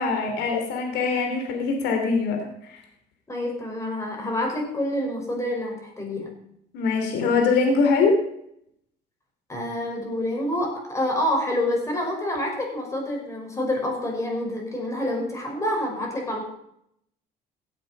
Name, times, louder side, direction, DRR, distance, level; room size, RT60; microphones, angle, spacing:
voice 1, 0.0-2.8 6.7-8.1, left 4 dB, 85° left, 3 dB, 3.1 m, -23 dB
voice 2, 3.3-6.3 9.5-16.4, left 1 dB, 15° left, 0 dB, 5.5 m, -27 dB
16.5 x 8.3 x 5.5 m, 0.74 s
cardioid pair, 110°, 17 cm